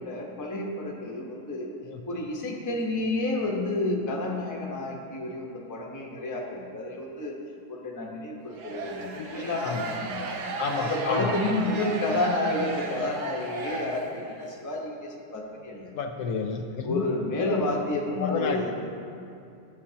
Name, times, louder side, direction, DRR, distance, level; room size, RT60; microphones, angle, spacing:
voice 1, 0.0-1.7 2.1-7.3 7.7-10.3 10.7-15.9 16.8-18.7, left 2 dB, 15° left, -2 dB, 0.7 m, -30 dB
sound 1, 8.5-14.5, right 3 dB, 75° right, 1.3 m, -35 dB
voice 2, 9.1-9.8 10.6-11.4 15.9-17.0 17.4-17.7 18.2-18.7, left 5 dB, 75° left, 4 dB, 1.0 m, -30 dB
12.5 x 7.3 x 2.8 m, 2.5 s
omnidirectional pair, 1.8 m